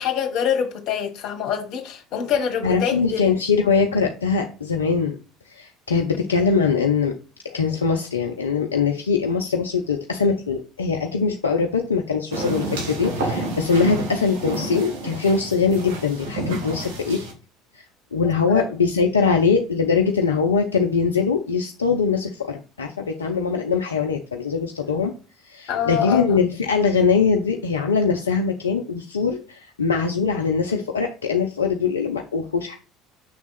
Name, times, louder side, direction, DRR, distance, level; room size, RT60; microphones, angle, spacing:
voice 1, 0.0-3.2 6.1-6.2 18.5-18.7 25.7-26.4, left 8 dB, 55° left, 1.4 m, -25 dB
voice 2, 2.6-5.2 5.5-7.1 7.4-17.2 17.7-17.8 18.1-25.1 25.4-32.8, left 5 dB, 85° left, 0.5 m, -22 dB
sound 1, 12.3-17.3, right 2 dB, 65° right, 2.1 m, -30 dB
6.6 x 3.6 x 4.0 m
figure-of-eight pair, 65°, 0 cm